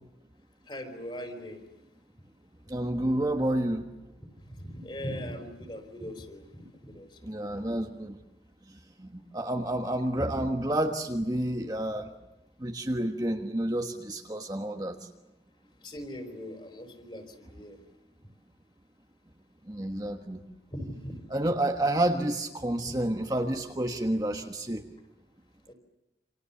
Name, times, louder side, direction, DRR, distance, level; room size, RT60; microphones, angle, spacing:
voice 1, 0.7-1.6 4.5-6.4 6.8-7.2 15.8-17.8 20.7-21.2 22.8-22.9 25.7-25.8, equal, 30° left, 7 dB, 4.3 m, -40 dB
voice 2, 2.7-3.8 7.2-8.2 9.0-12.1 12.6-15.1 19.7-20.4 21.3-24.8, right 1 dB, 20° right, 3 dB, 1.3 m, -29 dB
28.5 x 27.0 x 7.1 m, 0.97 s
head